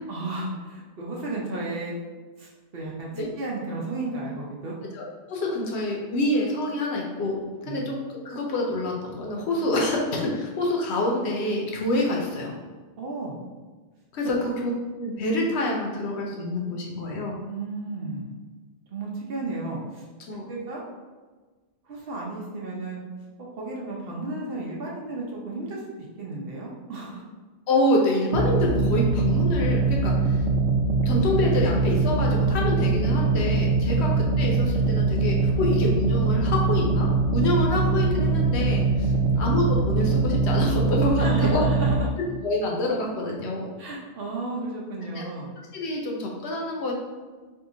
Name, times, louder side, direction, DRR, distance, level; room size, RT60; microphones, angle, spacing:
voice 1, 0.1-1.9 2.4-4.8 7.6-7.9 13.0-13.4 14.2-14.4 17.5-18.3 18.9-20.1 20.5-20.8 21.8-23.0 23.6-27.2 39.1-39.5 41.2-42.1 43.8-45.5, right 2 dB, 60° right, -3 dB, 0.8 m, -33 dB
voice 2, 4.9-12.6 14.1-14.7 15.0-17.4 20.3-20.5 27.7-30.4 31.0-41.6 42.4-43.7 45.1-45.2 45.7-46.9, left 1 dB, 70° left, -1 dB, 0.9 m, -27 dB
sound 1, 28.3-42.0, right 3 dB, 85° right, 0.9 m, -22 dB
2.8 x 2.4 x 3.7 m, 1.3 s
omnidirectional pair, 1.2 m